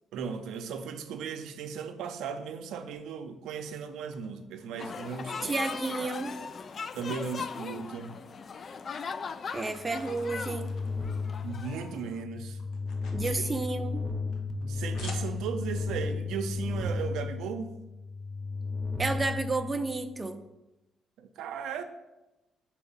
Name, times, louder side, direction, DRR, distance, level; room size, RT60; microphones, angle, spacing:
voice 1, 0.1-5.6 6.9-8.2 11.4-12.6 14.6-17.8 21.2-21.8, right 6 dB, 85° right, 6 dB, 0.5 m, -36 dB
sound 1, 3.0-5.8 6.3-7.4 7.7-8.7 9.1-11.7 12.0-15.8, left 3 dB, 85° left, 0.9 m, -52 dB
sound 2, 4.8-12.2, left 5 dB, 45° left, 0.3 m, -39 dB
voice 2, 5.4-6.3 9.5-10.7 13.1-14.0 19.0-20.4, right 3 dB, 25° right, 7 dB, 0.5 m, -31 dB
sound 3, 9.7-20.3, left 3 dB, ahead, 1.0 m, -35 dB
4.8 x 4.3 x 5.4 m, 1.0 s
cardioid pair, 90°, 0 cm